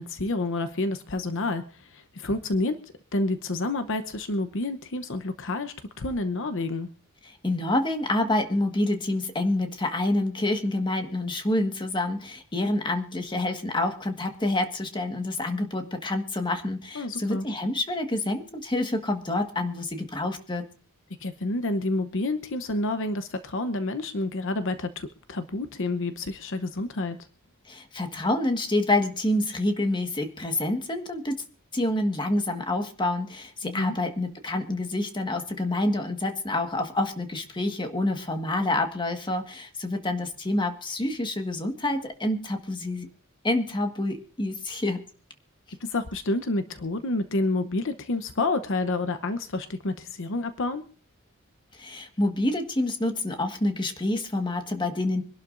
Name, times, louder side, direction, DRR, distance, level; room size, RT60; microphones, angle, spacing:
voice 1, 0.0-2.8 3.1-6.9 16.9-17.5 21.2-27.2 33.6-34.0 45.8-50.8, left 2 dB, 60° left, 10 dB, 0.9 m, -29 dB
voice 2, 7.2-20.7 27.7-31.4 31.7-43.1 43.4-45.0 51.7-55.2, left 1 dB, 20° left, 6 dB, 1.6 m, -27 dB
25.0 x 11.5 x 2.6 m, 0.40 s
head